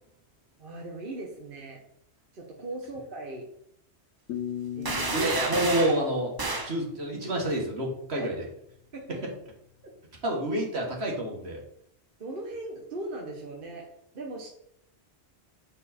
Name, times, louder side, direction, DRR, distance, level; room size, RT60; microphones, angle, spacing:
voice 1, 0.6-1.8 2.3-3.4 4.8-5.0 8.1-8.3 8.9-9.3 12.2-14.5, right 2 dB, 55° right, -1 dB, 1.2 m, -39 dB
sound 1, 4.3-7.2, left 10 dB, 85° left, 1.0 m, -39 dB
sound 2, 4.8-6.0 6.4-6.7, right 3 dB, 25° right, 0.6 m, -30 dB
voice 2, 5.1-6.4 6.6-8.4 10.2-11.6, right 1 dB, 70° right, -1 dB, 1.9 m, -28 dB
7.2 x 4.6 x 4.3 m, 0.73 s
omnidirectional pair, 1.1 m